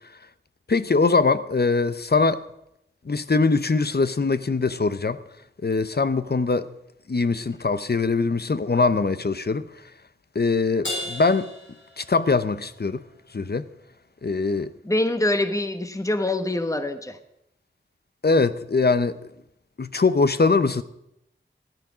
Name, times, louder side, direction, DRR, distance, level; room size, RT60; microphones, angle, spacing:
voice 1, 0.7-2.4 3.0-5.2 5.6-6.7 7.1-9.7 10.3-11.5 12.0-13.0 13.3-13.7 14.2-14.7 18.2-19.2 19.8-20.8, left 4 dB, 55° left, 0.8 m, -22 dB
Crash cymbal, 10.8-12.6, left 1 dB, 70° left, 5.2 m, -34 dB
voice 2, 14.8-17.2, left 1 dB, 15° left, 1.1 m, -24 dB
15.5 x 10.5 x 6.2 m
wide cardioid pair, 45°, 20 cm